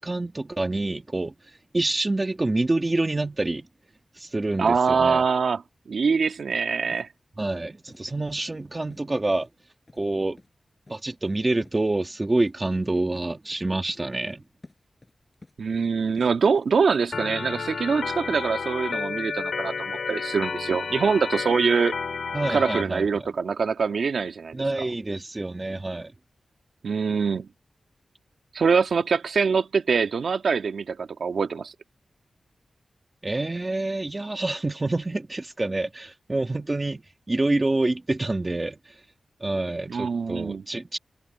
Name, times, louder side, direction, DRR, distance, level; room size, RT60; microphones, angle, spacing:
voice 1, 0.0-3.7 4.1-5.2 7.4-9.5 10.0-10.4 10.9-14.4 22.3-23.3 24.5-26.1 33.2-39.0 39.4-41.0, right 2 dB, 20° right, 2.0 m, -27 dB
voice 2, 4.6-5.6 5.9-7.1 15.6-21.9 22.5-24.6 26.8-27.5 28.5-31.7 39.9-40.6, right 5 dB, 65° right, 2.0 m, -24 dB
sound 1, 6.9-7.1 7.4-7.5 7.9-8.0 8.4-8.5 8.9-9.0 9.4-9.5 9.9-10.0 10.4-10.5 10.9-11.0 11.3-11.4 11.6-11.8 12.0-12.1 12.4-12.5 12.8-12.9 13.2-13.6 13.9-14.4 14.6-15.9 16.2-16.7, left 2 dB, 25° left, 6.6 m, -50 dB
Organ, 17.1-22.8, left 5 dB, 65° left, 2.6 m, -31 dB
wide cardioid pair, 165°, 0 cm